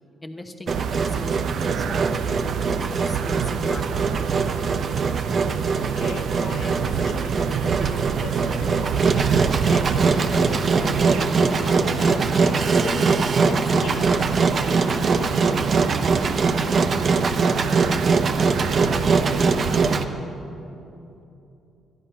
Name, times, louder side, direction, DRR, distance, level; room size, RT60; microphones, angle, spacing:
voice 1, 0.2-4.7 7.5-7.7, left 1 dB, 20° left, 5 dB, 1.1 m, -39 dB
Engine, 0.7-20.0, right 4 dB, 45° right, 0.7 m, -22 dB
sound 1, 0.7-20.0, right 9 dB, 80° right, 0.3 m, -30 dB
voice 2, 5.7-15.4, left 4 dB, 65° left, 6 dB, 1.0 m, -38 dB
13.0 x 10.5 x 5.7 m, 2.8 s
cardioid pair, 90°, 0 cm